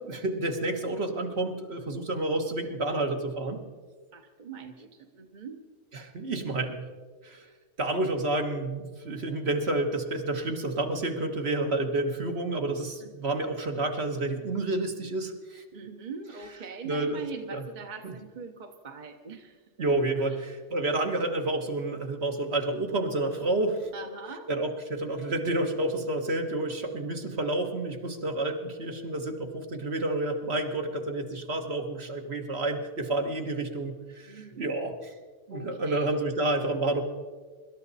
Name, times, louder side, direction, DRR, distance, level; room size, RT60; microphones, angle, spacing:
voice 1, 0.0-3.6 5.9-6.8 7.2-7.5 7.8-15.6 16.8-17.2 17.5-17.6 18.0-18.1 19.8-23.9 24.5-35.1 35.5-37.0, right 2 dB, 60° right, 3 dB, 1.8 m, -29 dB
voice 2, 4.1-5.6 13.0-13.1 15.7-19.6 19.9-20.4 23.9-24.5 34.2-34.7 35.5-36.2, right 5 dB, 45° right, 4 dB, 1.1 m, -42 dB
25.5 x 12.5 x 4.2 m, 1.4 s
omnidirectional pair, 1.2 m